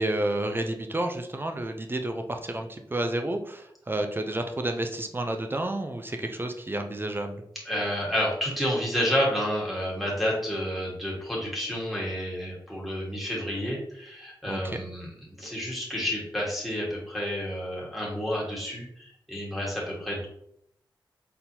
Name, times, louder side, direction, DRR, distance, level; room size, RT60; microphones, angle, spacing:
voice 1, 0.0-7.4 14.5-14.8, right 1 dB, 25° right, 5 dB, 0.5 m, -30 dB
voice 2, 7.6-20.3, equal, ahead, -5 dB, 1.4 m, -30 dB
4.4 x 3.8 x 2.8 m, 0.73 s
wide cardioid pair, 80°, 8 cm